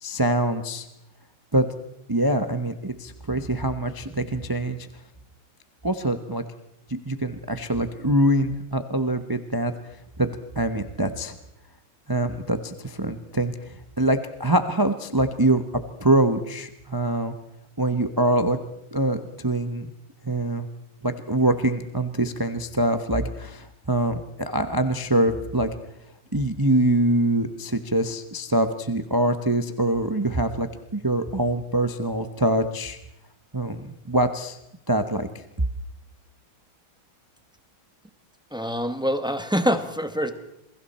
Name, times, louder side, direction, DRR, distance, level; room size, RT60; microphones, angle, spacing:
voice 1, 0.0-0.9 1.5-1.7 2.1-4.9 5.8-6.4 6.9-9.7 10.2-10.3 10.5-11.4 12.1-15.6 16.0-17.3 17.8-18.6 18.9-19.9 20.2-20.7 21.0-25.7 26.3-30.7 30.9-33.0 33.5-34.6 34.9-35.3, right 1 dB, 30° right, 9 dB, 0.4 m, -24 dB
voice 2, 38.5-40.3, equal, 5° right, 8 dB, 0.9 m, -25 dB
28.0 x 22.0 x 4.3 m, 0.83 s
omnidirectional pair, 2.3 m